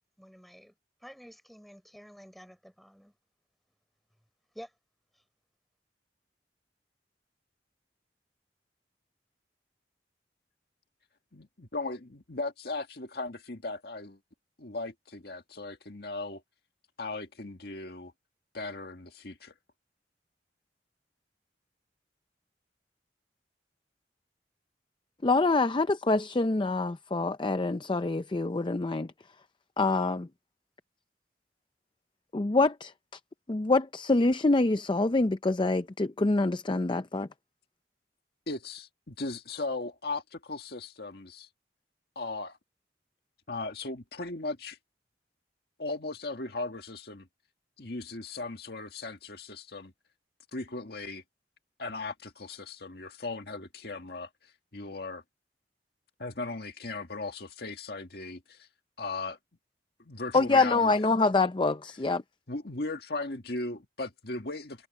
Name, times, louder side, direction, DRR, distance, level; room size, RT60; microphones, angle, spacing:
voice 1, 0.2-0.7 1.0-3.1 4.5-4.7 5.1-5.2, equal, ahead, 4.0 m, -50 dB
voice 2, 11.3-14.2 14.6-16.4 17.0-18.1 18.5-19.5 38.5-41.5 42.2-42.6 43.5-44.8 45.8-47.3 47.8-49.9 50.5-51.2 51.8-55.2 56.2-58.7 59.0-59.4 60.0-60.9 62.5-64.9, left 3 dB, 60° left, 1.9 m, -37 dB
voice 3, 25.2-29.1 29.8-30.2 32.3-33.2 33.5-37.3 60.3-62.2, left 3 dB, 25° left, 0.5 m, -26 dB
head